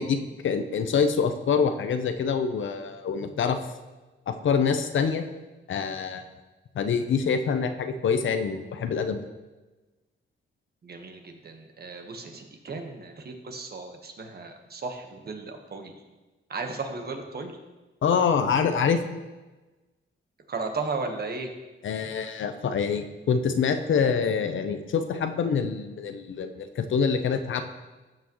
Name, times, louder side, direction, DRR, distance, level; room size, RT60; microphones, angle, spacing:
voice 1, 0.0-3.6 4.3-5.3 5.7-6.3 6.7-9.3 18.0-19.0 21.8-27.6, left 6 dB, 65° left, 8 dB, 0.7 m, -25 dB
voice 2, 10.8-15.9 16.5-17.6 20.5-21.5, right 3 dB, 50° right, 4 dB, 1.3 m, -35 dB
14.0 x 6.0 x 3.1 m, 1.2 s
cardioid pair, 90°, 21 cm